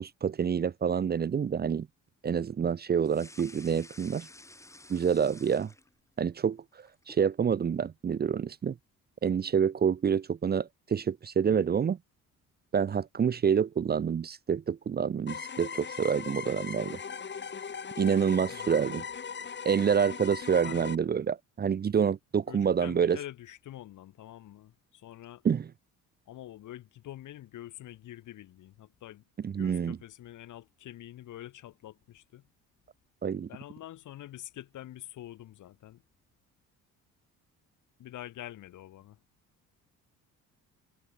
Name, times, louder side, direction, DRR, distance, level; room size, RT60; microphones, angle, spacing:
voice 1, 0.0-1.9 2.2-4.3 4.9-5.7 6.2-6.6 7.1-8.7 9.2-12.0 12.7-17.0 18.0-19.0 19.6-23.2 25.4-25.7 29.4-30.0 33.2-33.5, right 7 dB, 30° right, 0.8 m, -27 dB
sound 1, 3.0-6.2 6.6-7.3, left 2 dB, 10° left, 7.4 m, -52 dB
sound 2, 15.3-21.0, left 6 dB, 35° left, 6.0 m, -39 dB
voice 2, 18.5-19.0 20.6-20.9 22.5-25.4 26.3-29.2 29.6-32.4 33.5-36.0 38.0-39.2, left 13 dB, 70° left, 4.7 m, -46 dB
cardioid pair, 125°, 32 cm